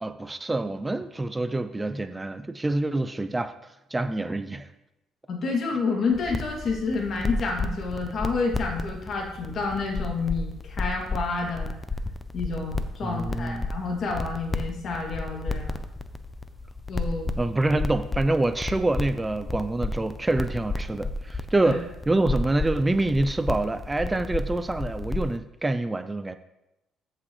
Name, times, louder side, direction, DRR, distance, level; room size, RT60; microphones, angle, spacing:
voice 1, 0.0-3.5 3.9-4.7 13.0-13.7 17.4-26.3, right 2 dB, 15° right, 0.5 m, -26 dB
voice 2, 5.3-11.7 12.3-15.8 16.9-17.3 21.6-21.8, left 4 dB, 50° left, 2.5 m, -29 dB
sound 1, 6.1-25.4, left 2 dB, 20° left, 0.7 m, -33 dB
14.0 x 6.0 x 3.2 m
cardioid pair, 90°, 0 cm